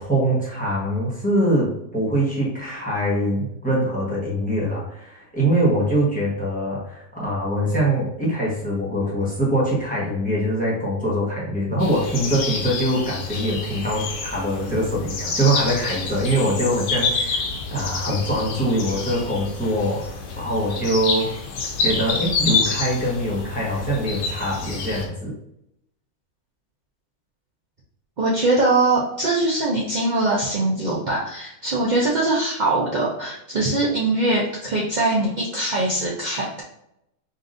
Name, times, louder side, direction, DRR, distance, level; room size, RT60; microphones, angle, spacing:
voice 1, 0.0-17.4 17.7-21.3 21.8-25.3, right 1 dB, 5° left, -5 dB, 1.1 m, -23 dB
sound 1, 11.8-25.1, left 4 dB, 90° left, 1.2 m, -28 dB
voice 2, 28.2-36.6, right 2 dB, 60° right, -4 dB, 0.4 m, -22 dB
5.4 x 2.5 x 2.6 m, 0.77 s
omnidirectional pair, 1.6 m